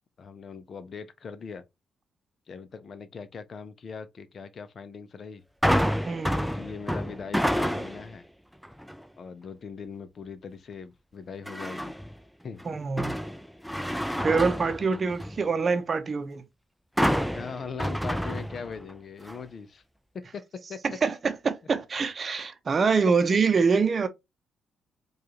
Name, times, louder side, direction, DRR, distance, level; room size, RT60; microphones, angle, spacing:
voice 1, 0.2-1.6 2.5-5.4 6.4-8.2 9.2-11.9 12.4-12.6 17.3-19.8 20.1-20.8 23.4-23.5, left 5 dB, 55° left, 0.6 m, -40 dB
sound 1, 5.6-8.1 8.6-9.0 11.5-12.1 12.6-15.4 17.0-18.9 19.3-19.4, equal, ahead, 0.4 m, -28 dB
voice 2, 6.0-6.5 12.6-13.1 14.2-16.4 21.0-24.1, right 5 dB, 45° right, 0.7 m, -25 dB
4.7 x 2.4 x 2.8 m
supercardioid pair, 60°, 0 cm